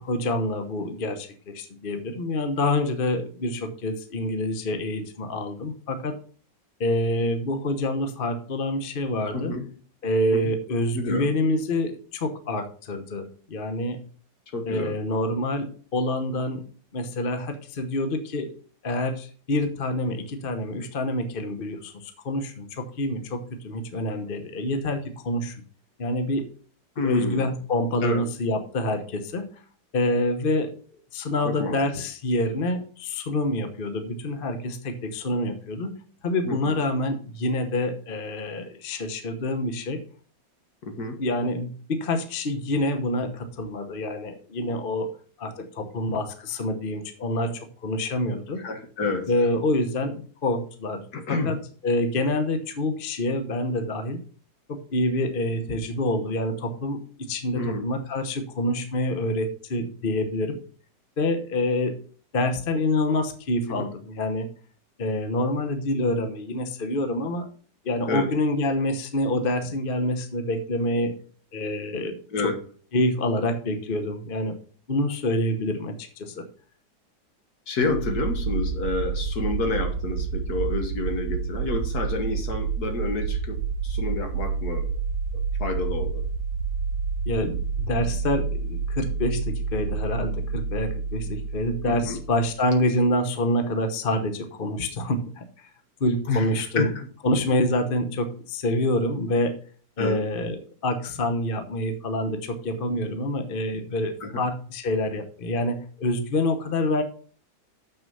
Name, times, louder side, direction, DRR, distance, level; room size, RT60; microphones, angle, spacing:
voice 1, 0.0-6.2 6.8-9.5 10.0-14.0 14.7-16.6 16.9-18.5 18.8-25.5 26.0-26.5 27.0-29.4 29.9-30.7 31.1-35.9 36.2-40.0 41.2-45.1 45.4-48.6 49.3-51.0 51.3-51.6 51.8-54.2 54.7-57.0 57.3-60.6 61.2-61.9 62.3-64.5 65.0-67.5 67.8-71.2 71.5-72.2 72.4-72.5 72.9-74.5 74.9-76.5 87.3-95.7 96.0-96.9 97.2-99.6 100.0-107.0, left 1 dB, 40° left, 7 dB, 0.9 m, -27 dB
voice 2, 9.3-9.7 10.3-10.5 10.9-11.3 14.5-15.0 27.0-27.5 28.0-28.2 31.4-31.8 36.5-36.8 40.8-41.2 48.6-49.3 51.1-51.6 57.5-57.9 63.7-63.9 68.1-68.3 72.3-72.6 77.7-84.9 85.3-86.2 91.8-92.2 96.3-96.9 100.0-100.3 104.2-104.4, left 3 dB, 55° left, 6 dB, 1.7 m, -29 dB
sound 1, 77.8-92.6, right 5 dB, 90° right, 1.3 m, -29 dB
7.2 x 6.2 x 5.4 m, 0.43 s
omnidirectional pair, 2.0 m